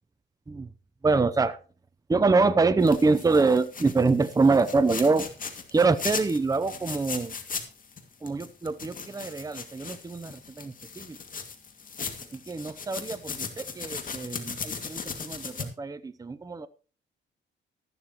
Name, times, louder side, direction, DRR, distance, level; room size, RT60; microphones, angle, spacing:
voice 1, 1.0-1.6 2.1-5.3 5.7-7.3 8.2-11.2 12.3-16.7, right 3 dB, 20° right, 13 dB, 0.7 m, -25 dB
sound 1, 2.8-8.0 8.3-15.6, left 5 dB, 45° left, 2.3 m, -38 dB
13.5 x 12.0 x 3.0 m, 0.37 s
cardioid pair, 90°, 20 cm